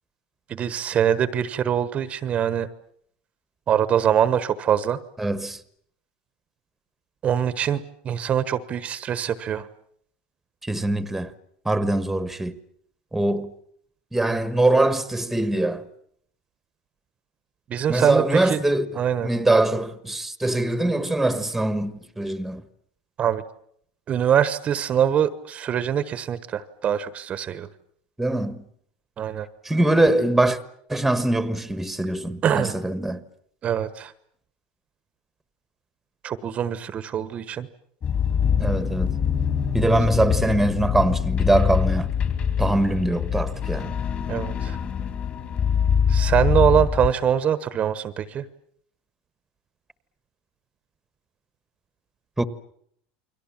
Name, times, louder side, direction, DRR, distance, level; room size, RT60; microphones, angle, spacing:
voice 1, 0.5-2.7 3.7-5.0 7.2-9.7 17.7-18.6 18.9-19.3 23.2-23.4 24.1-27.7 29.2-29.5 32.4-32.7 33.6-34.1 36.2-37.7 44.3-44.8 46.1-48.5, right 9 dB, 30° right, 1.1 m, -23 dB
voice 2, 5.2-5.6 10.6-11.3 11.6-12.5 13.1-13.5 14.1-15.8 17.9-18.9 19.2-22.6 28.2-28.6 29.6-30.6 30.9-33.2 38.6-39.2 39.7-42.1 42.6-44.0 52.4-52.5, right 2 dB, 5° right, 1.4 m, -22 dB
sound 1, 38.0-47.1, left 7 dB, 30° left, 2.9 m, -24 dB
29.5 x 23.0 x 7.4 m
supercardioid pair, 155°, 5 cm